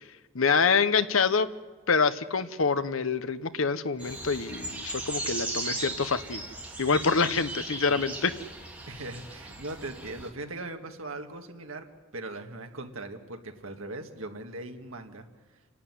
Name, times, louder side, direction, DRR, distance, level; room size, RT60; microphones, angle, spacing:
voice 1, 0.3-1.5 1.9-6.4 6.8-8.3, left 5 dB, 75° left, 13 dB, 0.9 m, -26 dB
sound 1, 4.0-10.3, right 2 dB, 5° right, 2.6 m, -37 dB
voice 2, 8.9-11.8 12.1-15.3, right 2 dB, 80° right, 5 dB, 1.8 m, -39 dB
27.5 x 12.0 x 9.7 m, 1.4 s
head